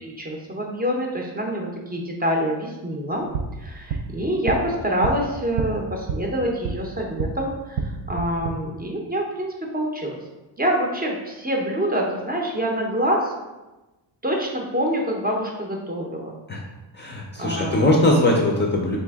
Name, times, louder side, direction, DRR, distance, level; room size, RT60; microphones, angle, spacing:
voice 1, 0.0-3.3 3.6-10.2 10.6-13.3 14.2-16.4 17.4-17.9, equal, 20° right, 0 dB, 0.6 m, -26 dB
sound 1, 3.1-7.4 7.7-8.5, right 5 dB, 80° right, 0.6 m, -30 dB
voice 2, 16.9-19.0, left 1 dB, 25° left, -1 dB, 0.4 m, -20 dB
4.2 x 2.9 x 3.4 m, 1.1 s
cardioid pair, 135°, 45 cm